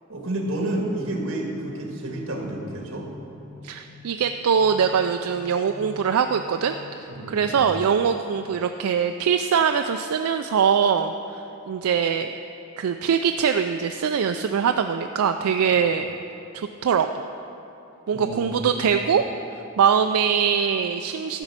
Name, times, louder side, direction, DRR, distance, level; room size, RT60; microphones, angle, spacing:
voice 1, 0.1-3.1 7.1-7.6 15.7-15.8 18.1-18.8, right 1 dB, 65° right, 0 dB, 1.7 m, -30 dB
sound 1, 0.8-8.7, left 2 dB, 70° left, 2.6 m, -48 dB
voice 2, 3.6-11.4 11.7-12.3 12.8-16.1 16.5-17.2 18.1-19.2 19.8-21.4, right 7 dB, 85° right, 6 dB, 0.4 m, -22 dB
13.0 x 5.3 x 7.3 m, 2.8 s
head